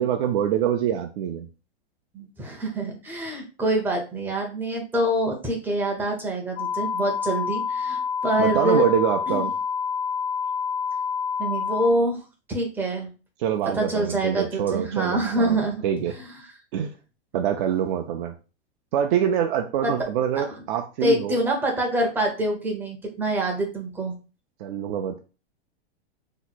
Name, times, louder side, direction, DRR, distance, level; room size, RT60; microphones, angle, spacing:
voice 1, 0.0-1.5 8.4-9.5 13.4-16.1 16.7-16.9 17.3-18.3 18.9-21.4 24.6-25.2, right 9 dB, 50° right, 3 dB, 0.5 m, -25 dB
voice 2, 2.1-8.8 9.3-9.5 11.4-12.2 12.5-13.1 13.7-15.8 16.1-16.3 19.8-19.9 20.4-20.5 21.0-24.2, right 1 dB, 5° right, 1 dB, 0.5 m, -25 dB
sound 1, 6.6-11.9, left 6 dB, 75° left, 0.6 m, -28 dB
2.9 x 2.1 x 4.1 m, 0.33 s
supercardioid pair, 150°, 32 cm